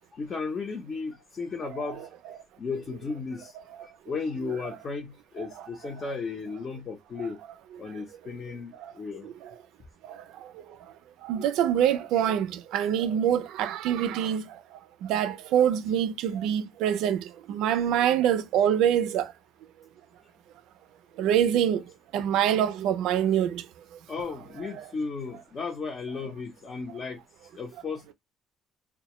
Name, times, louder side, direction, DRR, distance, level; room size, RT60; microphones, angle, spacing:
voice 1, 0.1-2.1 2.6-3.5 4.1-7.4 7.8-9.3 24.1-27.2 27.5-28.1, left 4 dB, 40° left, 0.6 m, -35 dB
voice 2, 11.3-14.4 15.0-19.3 21.2-21.8 22.1-23.6 24.7-24.8, right 10 dB, 90° right, 0.4 m, -25 dB
2.2 x 2.0 x 2.9 m
cardioid pair, 120°, 0 cm